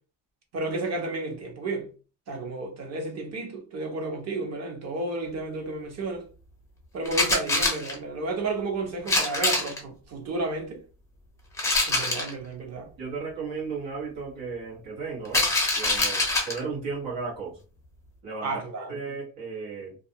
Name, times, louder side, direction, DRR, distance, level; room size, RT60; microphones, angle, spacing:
voice 1, 0.5-1.9 2.3-6.2 6.9-10.8 11.9-12.9 18.4-19.0, right 2 dB, 35° right, 0.7 m, -32 dB
sound 1, 7.1-7.9 9.1-9.8 11.6-12.3 15.2-16.6, left 2 dB, 5° left, 0.4 m, -24 dB
voice 2, 13.0-17.6 18.2-18.5 18.9-20.0, right 4 dB, 85° right, 1.2 m, -35 dB
2.3 x 2.3 x 2.7 m
cardioid pair, 175°, 43 cm